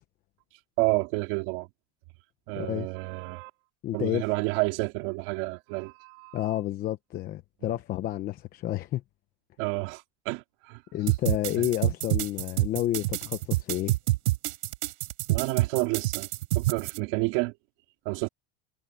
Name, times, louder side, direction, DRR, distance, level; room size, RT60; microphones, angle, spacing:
voice 1, 0.8-1.7 2.5-3.5 3.9-6.4 9.6-10.8 15.3-16.3 16.5-17.5 18.0-18.3, right 25 dB, 50° right, 3.2 m, -30 dB
voice 2, 2.5-2.9 3.8-4.2 6.3-9.0 10.9-13.9, left 13 dB, 25° left, 0.9 m, -30 dB
sound 1, 11.1-17.0, right 18 dB, 80° right, 6.1 m, -27 dB
supercardioid pair, 165°, 34 cm